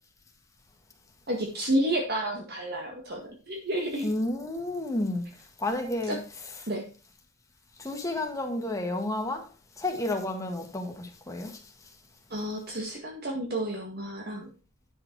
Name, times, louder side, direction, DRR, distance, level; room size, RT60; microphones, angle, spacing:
voice 1, 1.3-4.1 6.1-6.2 6.7-6.8 12.3-14.5, right 1 dB, 50° right, 1.9 m, -30 dB
voice 2, 4.0-5.3 5.6-6.2 7.8-9.5 9.8-11.6, left 1 dB, 15° left, 1.7 m, -31 dB
10.0 x 7.0 x 4.6 m
head